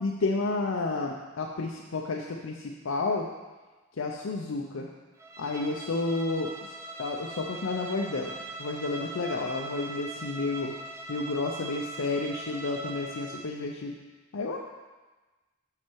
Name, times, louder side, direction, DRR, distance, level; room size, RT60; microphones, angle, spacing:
voice 1, 0.0-3.3 4.0-4.9 5.4-8.3 8.6-10.7 11.1-13.9 14.3-14.6, left 3 dB, 75° left, 0 dB, 0.6 m, -31 dB
Bowed string instrument, 5.2-13.6, right 2 dB, 15° right, 0.5 m, -41 dB
7.5 x 5.8 x 4.5 m, 1.2 s
head